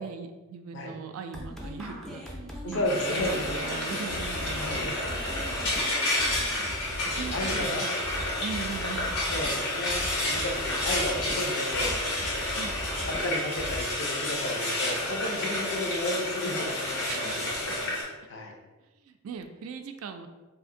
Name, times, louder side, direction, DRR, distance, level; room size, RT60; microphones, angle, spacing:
voice 1, 0.0-2.8 3.2-5.0 7.2-7.9 8.4-9.1 12.6-12.8 17.1-17.7 19.1-20.3, right 6 dB, 70° right, 7 dB, 0.3 m, -40 dB
sound 1, 1.3-13.8, equal, ahead, 0.4 m, -39 dB
voice 2, 2.6-3.4 4.5-5.1 6.9-7.9 9.3-12.0 13.0-17.9 18.3-18.6, left 1 dB, 55° left, 2 dB, 0.5 m, -33 dB
Frying (food), 2.8-18.0, left 1 dB, 90° left, 1.0 m, -30 dB
2.7 x 2.5 x 3.7 m, 1.2 s
head